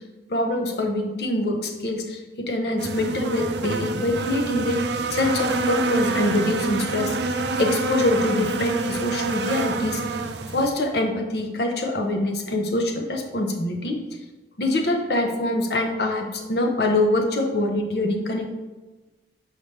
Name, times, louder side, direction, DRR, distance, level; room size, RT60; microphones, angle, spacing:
voice 1, 0.3-4.8 5.1-10.2 10.5-14.0 14.6-18.5, left 1 dB, 70° left, 4 dB, 0.9 m, -24 dB
sound 1, 2.8-10.7, right 3 dB, 80° right, 0.5 m, -27 dB
7.1 x 4.8 x 3.3 m, 1.2 s
head